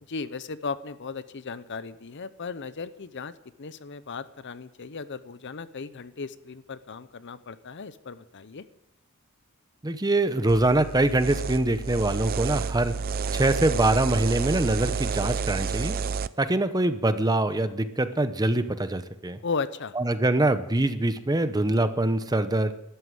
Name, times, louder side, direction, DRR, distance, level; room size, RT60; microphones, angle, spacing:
voice 1, 0.1-3.3 3.6-8.6 19.4-19.9, left 4 dB, 55° left, 14 dB, 0.7 m, -36 dB
voice 2, 9.8-12.9 13.3-16.0 16.4-19.4 20.0-22.7, right 2 dB, 20° right, 11 dB, 0.8 m, -24 dB
sound 1, 10.5-16.3, right 5 dB, 45° right, 0.4 m, -30 dB
12.5 x 11.5 x 7.8 m, 0.85 s
head